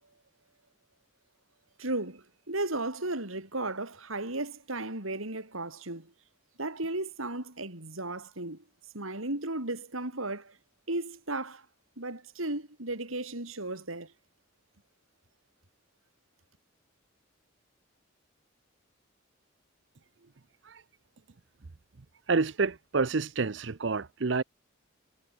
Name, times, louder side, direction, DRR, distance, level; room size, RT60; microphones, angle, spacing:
voice 1, 1.8-6.1 6.6-8.6 8.9-10.6 10.9-11.7 12.0-14.1, right 2 dB, 90° right, 5.3 m, -35 dB
voice 2, 22.3-24.4, right 4 dB, 65° right, 0.7 m, -28 dB
head